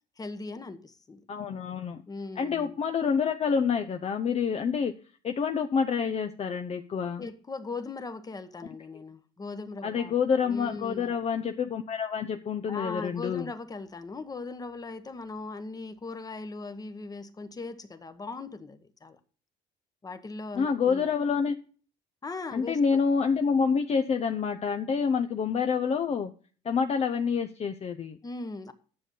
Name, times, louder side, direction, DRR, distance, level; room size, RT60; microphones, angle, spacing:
voice 1, 0.2-1.2 2.1-2.8 7.2-10.2 10.4-11.1 12.7-19.2 20.0-21.1 22.2-22.8 28.2-28.7, left 3 dB, 20° left, 1.1 m, -39 dB
voice 2, 1.3-2.0 2.4-4.9 5.2-7.3 9.8-13.5 20.5-21.6 22.5-26.3 26.6-28.2, left 6 dB, 40° left, 0.7 m, -27 dB
9.9 x 6.9 x 5.4 m
cardioid pair, 110°, 17 cm